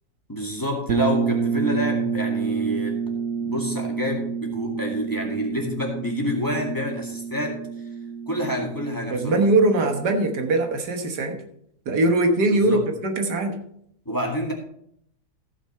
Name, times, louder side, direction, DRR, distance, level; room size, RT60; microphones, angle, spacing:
voice 1, 0.3-3.0 3.4-7.6 8.3-9.4 12.5-12.9 14.1-14.5, equal, 10° left, -1 dB, 2.0 m, -28 dB
sound 1, 0.9-10.6, right 6 dB, 65° right, 1.2 m, -29 dB
voice 2, 9.1-11.4 11.9-13.6, right 2 dB, 80° right, 5 dB, 1.9 m, -21 dB
15.0 x 6.2 x 4.3 m, 0.70 s
omnidirectional pair, 1.7 m